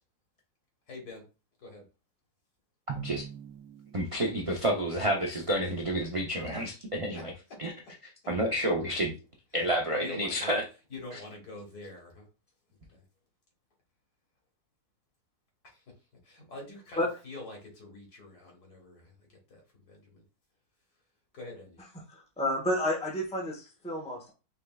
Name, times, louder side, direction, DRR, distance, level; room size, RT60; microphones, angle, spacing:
voice 1, 0.9-1.3 1.6-1.9 6.4-6.5 7.1-7.3 7.6-7.7 9.8-10.6 10.9-12.2 12.9-13.0 15.6-15.8 16.2-20.2 21.3-21.8, left 2 dB, 75° left, 2.1 m, -46 dB
Drum, 2.9-5.1, right 7 dB, 85° right, 1.3 m, -43 dB
voice 2, 3.9-7.3 7.6-7.7 8.3-9.1 9.5-10.6 11.1-11.2, right 1 dB, 60° right, 0.3 m, -29 dB
voice 3, 22.1-24.3, left 1 dB, 5° left, 0.8 m, -30 dB
5.3 x 3.3 x 2.3 m
omnidirectional pair, 1.7 m